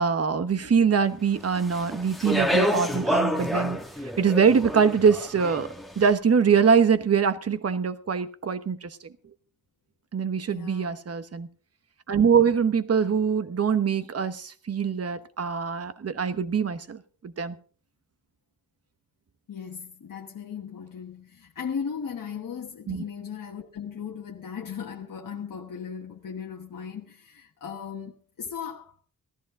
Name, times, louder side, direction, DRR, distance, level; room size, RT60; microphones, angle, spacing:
voice 1, 0.0-3.8 4.2-5.7 6.0-9.0 10.1-11.5 12.1-17.5 22.9-23.0, right 6 dB, 45° right, 1.1 m, -23 dB
Speech, 1.5-5.9, equal, ahead, 1.2 m, -28 dB
voice 2, 10.5-11.0 19.5-29.0, left 7 dB, 65° left, 1.3 m, -37 dB
18.0 x 14.0 x 3.7 m
wide cardioid pair, 155°, 35 cm